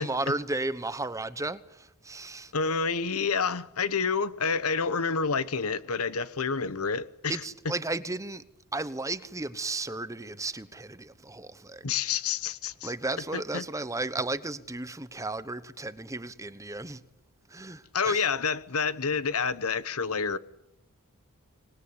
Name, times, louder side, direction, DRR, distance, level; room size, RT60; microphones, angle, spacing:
voice 1, 0.0-2.5 7.3-8.4 8.7-11.8 12.8-17.0 17.5-18.3, right 2 dB, 15° right, 1.0 m, -34 dB
voice 2, 2.5-7.4 11.8-12.9 13.3-13.6 17.9-20.4, left 5 dB, 75° left, 1.1 m, -28 dB
25.5 x 20.5 x 9.8 m
head